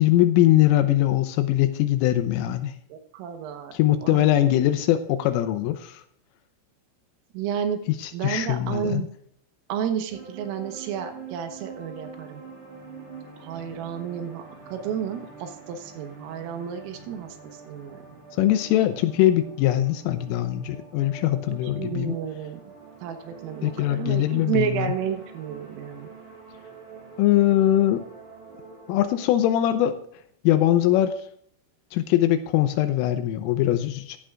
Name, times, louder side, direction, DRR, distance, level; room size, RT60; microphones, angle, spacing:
voice 1, 0.0-2.8 3.7-6.0 8.0-9.0 18.4-22.2 23.6-24.9 27.2-28.0 28.9-30.0 30.4-31.2 31.9-34.2, left 13 dB, 85° left, 9 dB, 3.3 m, -21 dB
voice 2, 2.9-4.3 7.3-7.8 8.1-9.1 9.7-12.4 13.4-14.4 14.7-17.3 17.7-18.0 21.5-22.6 23.0-26.1, right 8 dB, 85° right, 5 dB, 3.8 m, -31 dB
sound 1, 10.1-29.7, right 4 dB, 60° right, 7.2 m, -45 dB
15.5 x 13.0 x 2.4 m, 0.65 s
omnidirectional pair, 5.8 m